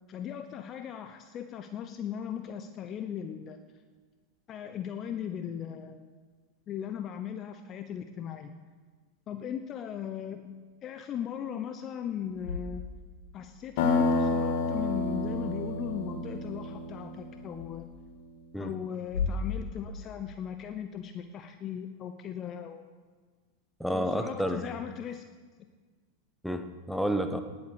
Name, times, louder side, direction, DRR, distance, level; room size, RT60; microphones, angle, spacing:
voice 1, 0.1-3.6 4.5-6.1 6.7-8.6 9.3-12.9 13.3-17.9 18.6-22.9 23.9-25.2, left 9 dB, 30° left, 8 dB, 0.8 m, -38 dB
sound 1, 12.1-13.6 14.7-15.4 17.5-17.7 19.0-21.0, left 4 dB, 65° left, 2.6 m, -37 dB
sound 2, 13.8-17.6, left 3 dB, 50° left, 2.1 m, -29 dB
voice 2, 23.8-24.7 26.4-27.4, equal, ahead, 7 dB, 1.2 m, -30 dB
18.5 x 8.0 x 6.9 m, 1.5 s
figure-of-eight pair, 90°, 0 cm